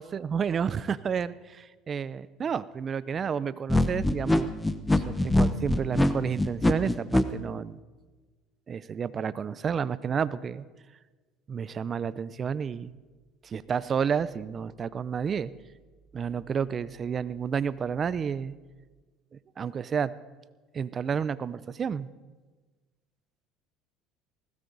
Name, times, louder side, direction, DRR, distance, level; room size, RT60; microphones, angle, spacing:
voice 1, 0.0-4.5 5.0-7.8 8.7-10.6 11.5-12.9 13.4-15.5 16.1-18.5 19.6-20.1 20.7-22.1, right 7 dB, 35° right, 17 dB, 0.6 m, -30 dB
sound 1, 3.7-7.2, left 1 dB, 10° left, 0.9 m, -23 dB
20.0 x 17.0 x 4.0 m, 1.3 s
supercardioid pair, 100°, 0 cm